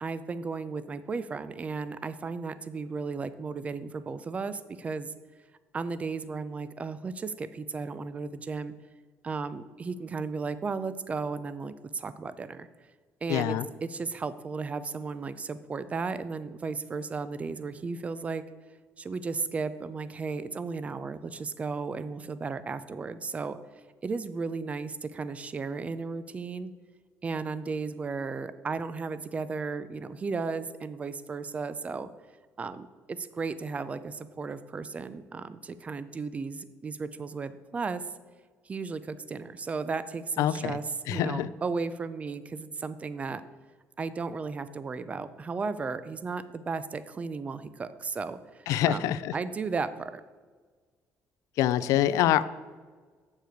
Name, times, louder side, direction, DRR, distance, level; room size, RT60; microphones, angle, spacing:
voice 1, 0.0-5.1 5.7-8.7 9.2-12.7 13.2-18.4 19.0-23.6 24.0-26.7 27.2-32.1 32.6-38.0 38.6-43.4 44.0-50.1, right 4 dB, 25° right, 14 dB, 0.4 m, -35 dB
voice 2, 13.3-13.7 40.4-40.8 41.1-41.5 48.7-49.3 51.6-52.4, left 12 dB, 90° left, 16 dB, 0.4 m, -25 dB
7.2 x 6.7 x 4.5 m, 1.5 s
cardioid pair, 135°, 5 cm